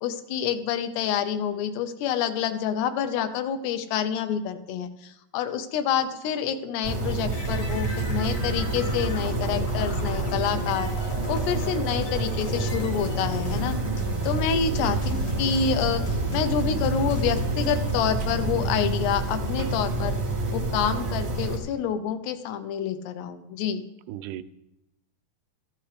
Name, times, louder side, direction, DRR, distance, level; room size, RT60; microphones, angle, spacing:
voice 1, 0.0-10.9 11.3-13.8 14.2-20.2 20.5-23.8, left 8 dB, 85° left, 9 dB, 2.8 m, -28 dB
sound 1, 6.8-21.6, right 2 dB, 60° right, 1.1 m, -28 dB
sound 2, 7.3-17.9, left 1 dB, 60° left, 1.4 m, -37 dB
voice 2, 24.1-24.4, right 13 dB, 85° right, 13 dB, 2.6 m, -35 dB
14.0 x 11.5 x 3.3 m, 0.88 s
omnidirectional pair, 4.8 m